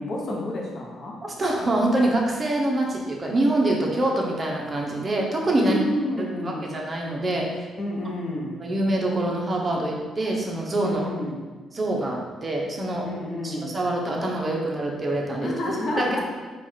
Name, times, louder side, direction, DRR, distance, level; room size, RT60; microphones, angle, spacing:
voice 1, 0.0-1.2 5.6-6.8 7.8-8.6 10.8-11.4 13.0-13.8 15.4-16.2, left 1 dB, 50° left, -1 dB, 0.9 m, -29 dB
voice 2, 1.2-5.8 6.4-7.5 8.6-11.1 11.7-13.1 13.4-16.2, right 1 dB, 30° right, -1 dB, 0.9 m, -25 dB
4.4 x 2.5 x 4.3 m, 1.3 s
cardioid pair, 90°, 0 cm